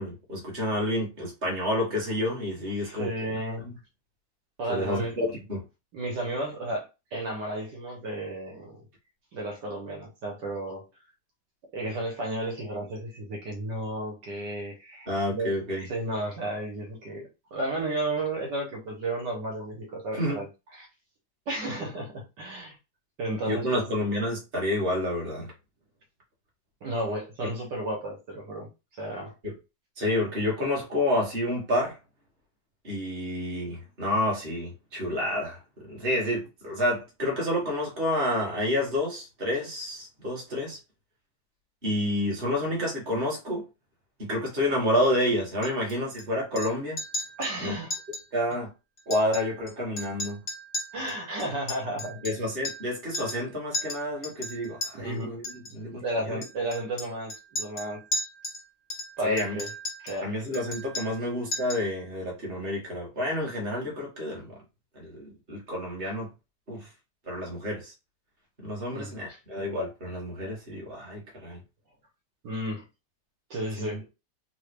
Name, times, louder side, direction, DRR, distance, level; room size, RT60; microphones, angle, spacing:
voice 1, 0.0-3.1 3.6-3.7 4.7-5.6 15.1-15.9 20.2-20.4 23.4-25.5 27.4-27.5 29.4-29.5 30.0-32.0 32.8-40.8 41.8-43.6 44.2-47.0 47.6-47.8 48.3-48.7 49.1-50.4 52.2-55.4 55.7-56.4 59.2-59.6 60.2-64.6 64.9-66.3 66.7-66.9 67.3-67.9 68.6-71.6 73.8-74.0, left 1 dB, 35° right, 1.5 m, -29 dB
voice 2, 2.8-3.7 4.6-5.2 5.9-8.8 9.3-10.8 11.7-15.5 15.9-20.9 21.5-22.7 23.2-23.9 26.8-29.3 47.4-48.0 50.9-52.2 54.9-55.3 56.0-58.0 59.2-59.7 60.0-60.4 68.9-69.4 72.4-72.8 73.5-74.0, right 1 dB, 75° right, 1.7 m, -33 dB
Chink clink, 45.6-46.2 46.6-46.7 47.0-47.5 47.9-48.2 48.5-48.6 49.0-49.7 50.0-52.9 53.1-53.5 53.7-54.9 55.4-55.7 56.4-58.6 58.9-60.2 60.5-61.2 61.5-61.9, left 1 dB, 35° left, 0.5 m, -35 dB
3.9 x 2.1 x 3.3 m
omnidirectional pair, 1.9 m